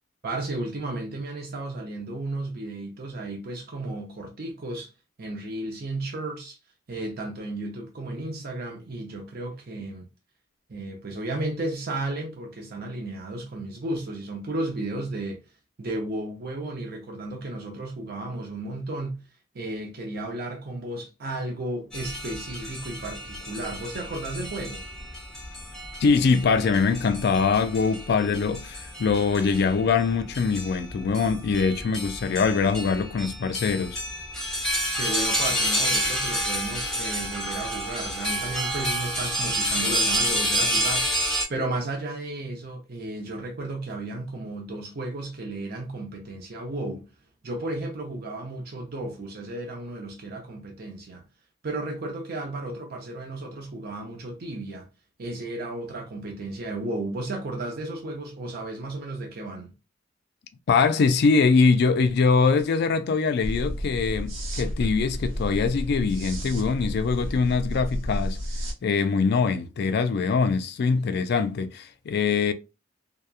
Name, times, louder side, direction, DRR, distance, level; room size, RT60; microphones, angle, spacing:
voice 1, 0.2-4.9 5.2-6.6 6.9-10.1 10.7-15.4 15.8-19.2 19.5-24.8 34.9-47.1 47.4-51.2 51.6-54.9 55.2-59.7, right 2 dB, 50° right, 0.6 m, -33 dB
sound 1, 21.9-41.4, equal, 5° left, 0.7 m, -29 dB
voice 2, 26.0-34.0 60.7-68.4 68.8-72.5, left 5 dB, 55° left, 0.3 m, -23 dB
sound 2, 63.4-68.7, equal, 80° right, 0.8 m, -31 dB
2.8 x 2.2 x 2.3 m
head